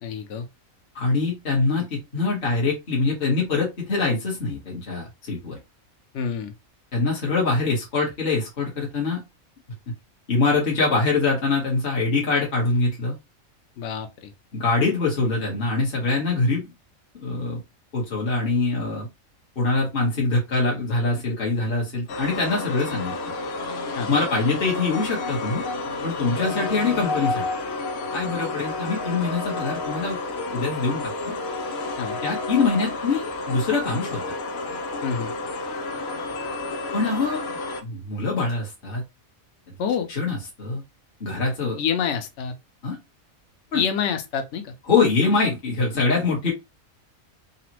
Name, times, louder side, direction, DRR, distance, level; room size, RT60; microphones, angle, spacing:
voice 1, 0.0-0.5 6.1-6.5 13.8-14.3 23.9-24.1 32.0-32.2 35.0-35.3 39.8-40.1 41.8-42.5 43.7-44.7, left 7 dB, 65° left, 0.9 m, -27 dB
voice 2, 0.9-5.6 6.9-9.2 10.3-13.1 14.5-16.7 17.2-17.6 17.9-19.1 19.6-23.1 24.1-25.6 26.0-27.4 28.1-30.2 30.5-31.3 32.2-34.3 36.9-39.0 40.1-40.8 41.2-41.8 42.8-43.0 43.7-43.8 44.9-46.5, left 3 dB, 45° left, 1.2 m, -24 dB
sound 1, 22.1-37.8, left 3 dB, 90° left, 1.0 m, -30 dB
3.9 x 2.0 x 2.8 m
omnidirectional pair, 1.4 m